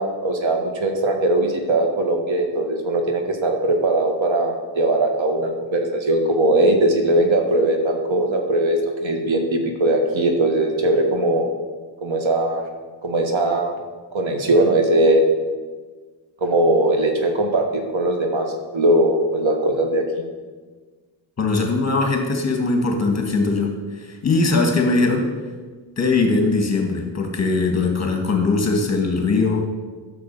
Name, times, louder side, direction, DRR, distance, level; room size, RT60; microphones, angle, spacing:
voice 1, 0.0-11.4 12.0-12.6 13.0-13.7 14.1-15.2 16.4-20.2, right 1 dB, 80° right, 3 dB, 1.8 m, -20 dB
voice 2, 21.4-25.3 26.0-29.7, left 3 dB, 35° left, 2 dB, 1.7 m, -20 dB
12.5 x 6.7 x 5.5 m, 1.4 s
wide cardioid pair, 145°, 45 cm